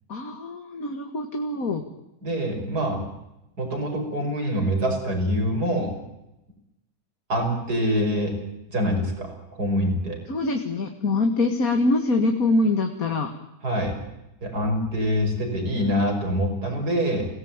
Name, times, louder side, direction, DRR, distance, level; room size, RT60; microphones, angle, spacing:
voice 1, 0.1-1.8 10.3-13.3, left 2 dB, 65° left, 4 dB, 2.5 m, -24 dB
voice 2, 2.2-3.0 3.6-5.9 7.3-8.3 8.7-10.2 13.6-14.0 14.4-17.3, equal, 80° right, 3 dB, 6.4 m, -25 dB
27.0 x 18.0 x 9.0 m, 0.91 s
omnidirectional pair, 1.7 m